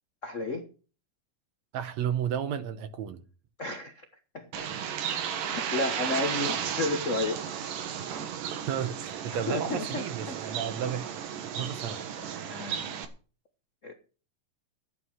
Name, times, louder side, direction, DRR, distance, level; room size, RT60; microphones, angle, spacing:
voice 1, 0.2-0.7 3.6-4.0 4.3-4.7 5.3-7.5 9.5-10.4 12.4-12.8 13.8-13.9, left 2 dB, 80° left, 0.6 m, -32 dB
voice 2, 1.7-3.2 8.5-11.1 11.6-12.0, right 9 dB, 70° right, 2.0 m, -33 dB
Bird, 4.5-13.0, right 8 dB, 85° right, 3.0 m, -34 dB
11.5 x 9.6 x 6.3 m
omnidirectional pair, 3.7 m